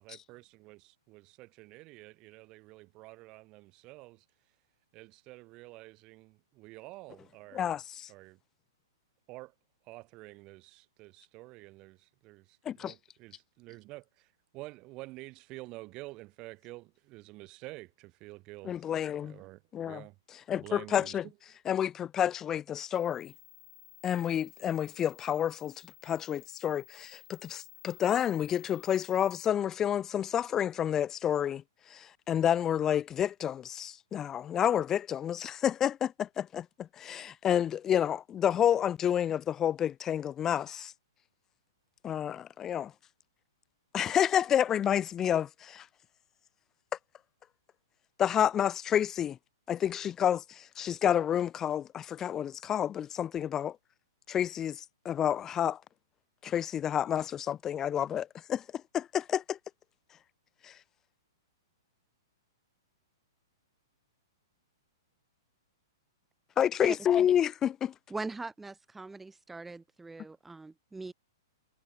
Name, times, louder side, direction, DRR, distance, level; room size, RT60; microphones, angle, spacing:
voice 1, 0.0-4.2 4.9-7.8 8.1-8.4 9.3-9.5 9.9-12.5 12.7-14.3 14.5-18.9 19.2-19.6 19.9-20.1 20.5-21.2, right 21 dB, 35° right, 1.5 m, -49 dB
voice 2, 7.5-8.1 12.7-12.9 18.6-19.4 19.7-20.0 20.5-21.3 21.7-23.3 24.0-25.7 26.0-31.6 31.9-40.9 42.0-42.9 43.9-45.8 48.2-49.4 49.7-53.7 54.3-55.8 56.4-58.6 58.9-59.6 66.6-67.9, left 9 dB, 20° left, 0.4 m, -29 dB
sound 1, 22.9-29.5, left 17 dB, 50° left, 5.9 m, -54 dB
voice 3, 68.1-71.1, right 3 dB, 10° right, 5.7 m, -41 dB
hypercardioid pair, 115°, 2 cm